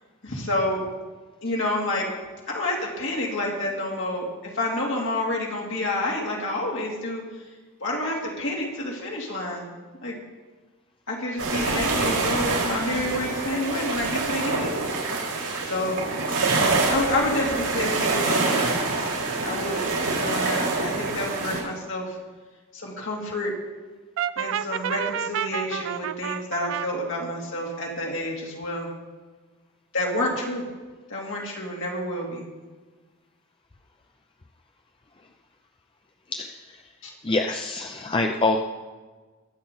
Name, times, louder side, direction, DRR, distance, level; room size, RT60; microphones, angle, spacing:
voice 1, 0.2-0.8 1.4-2.1 2.5-7.2 7.8-9.7 10.0-10.2 11.1-14.8 15.7-16.0 16.9-19.1 19.4-22.2 22.7-23.5 24.4-28.9 29.9-30.7 31.1-32.5 37.0-37.1, left 1 dB, 55° left, -2 dB, 2.8 m, -29 dB
sound 1, 11.4-21.6, right 3 dB, 85° right, 4.5 m, -26 dB
Brass instrument, 24.2-26.9, right 9 dB, 60° right, 0.4 m, -29 dB
voice 2, 37.2-38.6, left 3 dB, 25° left, 4 dB, 0.5 m, -25 dB
22.0 x 7.5 x 3.9 m, 1.4 s
head